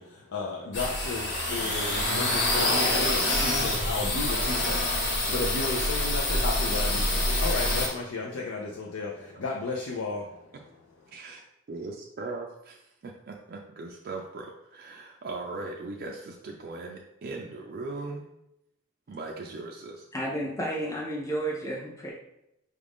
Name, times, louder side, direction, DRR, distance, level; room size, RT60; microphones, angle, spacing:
voice 1, 0.0-11.2, left 3 dB, 85° left, -1 dB, 0.5 m, -34 dB
sound 1, 0.7-7.9, left 1 dB, 55° left, 1.1 m, -26 dB
voice 2, 11.7-18.3 19.1-20.1, right 3 dB, 50° right, 0 dB, 0.4 m, -39 dB
voice 3, 20.1-22.1, right 1 dB, 15° left, -3 dB, 0.5 m, -31 dB
5.0 x 2.5 x 3.5 m, 0.84 s
head